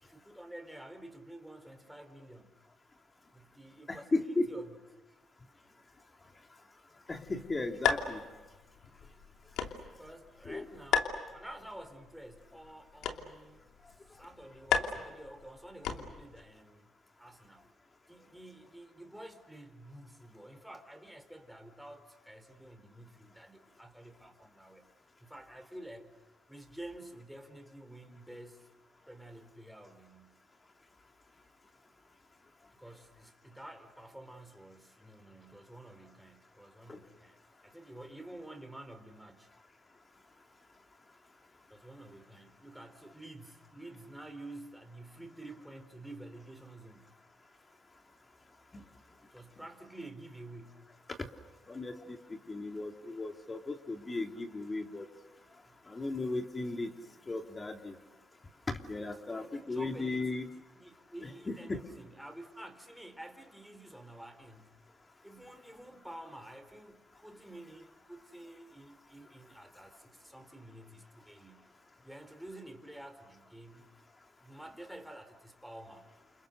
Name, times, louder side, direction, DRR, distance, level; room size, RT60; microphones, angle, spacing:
voice 1, 0.0-2.5 3.3-4.8 5.1-5.2 9.8-13.7 14.1-16.9 17.2-17.7 18.1-24.9 25.2-26.1 26.5-28.7 29.1-30.4 32.8-37.4 37.6-39.5 41.7-47.1 49.3-50.9 55.7-55.8 59.4-64.8 65.2-71.7 72.0-73.9 74.4-76.1, right 1 dB, 5° right, 7 dB, 4.2 m, -50 dB
voice 2, 3.9-4.5 7.1-8.2 10.4-10.7 36.9-37.0 48.7-48.8 51.7-55.1 55.9-56.9 57.3-58.0 58.7-60.5 61.2-61.8, left 2 dB, 25° left, 5 dB, 2.9 m, -36 dB
sound 1, 7.1-16.4, left 7 dB, 85° left, 2.9 m, -37 dB
29.5 x 28.5 x 6.7 m, 1.3 s
cardioid pair, 90°, 0 cm